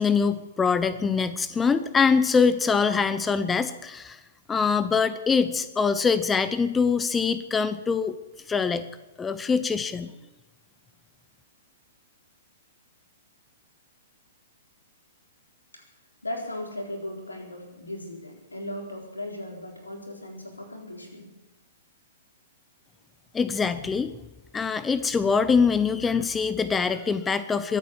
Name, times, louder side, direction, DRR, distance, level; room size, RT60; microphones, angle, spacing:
voice 1, 0.0-4.2 4.5-8.2 8.5-8.9 9.2-10.1 23.3-24.1 24.5-27.8, left 5 dB, 15° left, 13 dB, 0.7 m, -24 dB
voice 2, 16.2-21.3, left 1 dB, 85° left, 1 dB, 4.0 m, -37 dB
23.0 x 8.7 x 7.1 m, 1.1 s
figure-of-eight pair, 110°, 0 cm